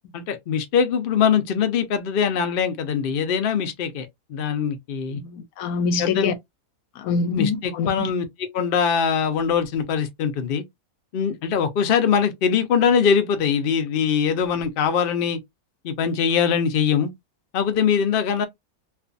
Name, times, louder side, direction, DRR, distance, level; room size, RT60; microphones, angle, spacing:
voice 1, 0.1-5.2 6.0-6.4 7.3-10.6 11.1-15.4 15.8-17.1 17.5-18.5, left 7 dB, 90° left, 0.4 m, -22 dB
voice 2, 5.2-6.3 7.0-8.1, left 5 dB, 70° left, 1.0 m, -25 dB
2.5 x 2.4 x 2.4 m
omnidirectional pair, 1.7 m